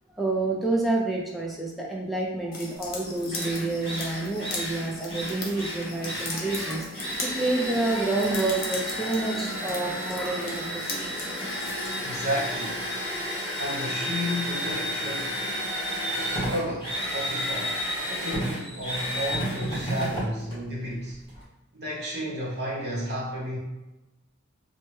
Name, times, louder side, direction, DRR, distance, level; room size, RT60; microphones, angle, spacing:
voice 1, 0.1-10.8, right 2 dB, ahead, -4 dB, 0.4 m, -28 dB
sound 1, 2.5-12.1, left 3 dB, 45° left, 0.6 m, -39 dB
Drill, 2.9-3.0 3.3-21.4, equal, 25° left, 1.0 m, -32 dB
voice 2, 12.0-12.9 13.6-15.4 16.5-17.8 18.1-21.2 21.7-23.6, equal, 50° right, -5 dB, 0.9 m, -32 dB
3.1 x 2.2 x 3.0 m, 1.0 s
head